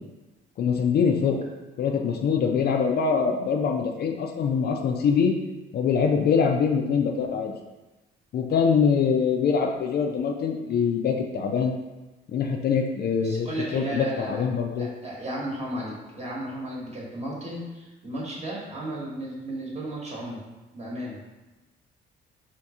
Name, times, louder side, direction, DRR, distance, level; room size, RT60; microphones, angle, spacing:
voice 1, 0.6-1.4 1.8-5.3 5.7-7.5 8.3-11.7 12.3-13.5 13.7-14.9, left 6 dB, 55° left, 3 dB, 0.4 m, -23 dB
voice 2, 13.2-14.4 14.8-20.5 20.7-21.2, right 1 dB, 35° right, -4 dB, 1.1 m, -34 dB
2.7 x 2.5 x 3.5 m, 1.1 s
cardioid pair, 90°, 20 cm